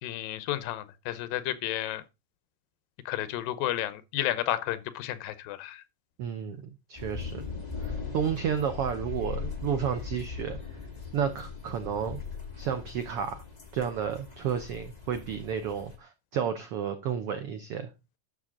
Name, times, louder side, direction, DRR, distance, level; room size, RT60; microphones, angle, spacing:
voice 1, 0.0-2.0 3.1-5.8, left 13 dB, 85° left, 2.6 m, -32 dB
voice 2, 6.2-6.6 6.9-7.5 7.8-10.6 11.1-12.2 12.6-13.4 13.7-17.9, right 8 dB, 80° right, 1.3 m, -31 dB
sound 1, 7.0-16.0, left 5 dB, 15° left, 1.5 m, -40 dB
11.0 x 6.7 x 3.8 m
omnidirectional pair, 3.9 m